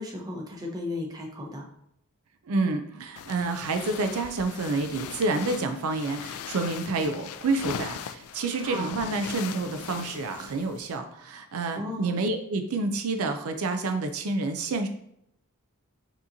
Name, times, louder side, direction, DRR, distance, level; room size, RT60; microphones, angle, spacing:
voice 1, 0.0-1.7 8.6-8.9 11.7-12.1, left 1 dB, 15° right, 0 dB, 0.7 m, -35 dB
voice 2, 2.5-14.9, right 3 dB, 80° right, 7 dB, 0.5 m, -29 dB
sound 1, 3.2-11.0, left 8 dB, 75° left, 0.3 m, -40 dB
6.0 x 2.9 x 2.6 m, 0.76 s
head